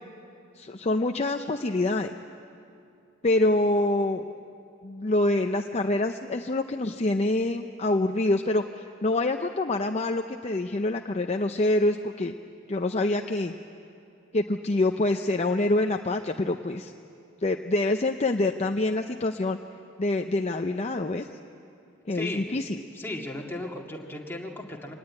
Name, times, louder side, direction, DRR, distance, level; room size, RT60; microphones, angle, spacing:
voice 1, 0.6-2.2 3.2-4.3 4.8-12.3 12.7-13.5 14.3-16.9 17.4-19.6 20.0-21.3 22.1-22.8, left 2 dB, 35° left, 5 dB, 0.6 m, -26 dB
voice 2, 22.1-22.6 22.9-24.9, left 1 dB, 10° left, -1 dB, 2.1 m, -36 dB
25.0 x 18.5 x 9.6 m, 2.6 s
head